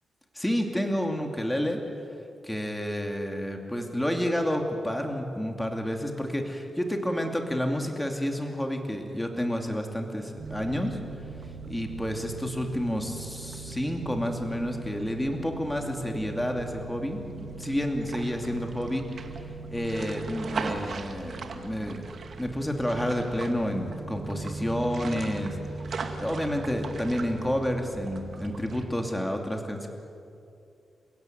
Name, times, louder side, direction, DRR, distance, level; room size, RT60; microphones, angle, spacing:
voice 1, 0.3-1.8 2.4-11.0 11.7-19.2 19.7-22.1 22.4-25.6 25.9-29.9, equal, 5° left, 3 dB, 2.7 m, -30 dB
sound 1, 10.4-28.9, right 4 dB, 55° right, 2.2 m, -39 dB
29.5 x 16.0 x 9.4 m, 2.6 s
wide cardioid pair, 115°, 0 cm